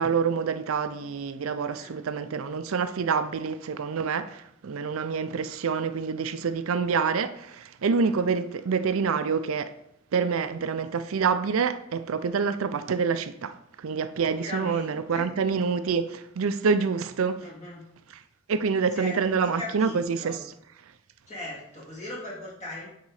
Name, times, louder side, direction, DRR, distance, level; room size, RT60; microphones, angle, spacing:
voice 1, 0.0-9.7 10.1-17.4 18.5-20.4, right 5 dB, 75° right, 0.5 m, -27 dB
voice 2, 14.3-15.2 17.4-17.9 18.9-20.4 21.3-22.9, left 1 dB, 30° left, 2.6 m, -39 dB
9.4 x 3.8 x 4.8 m
head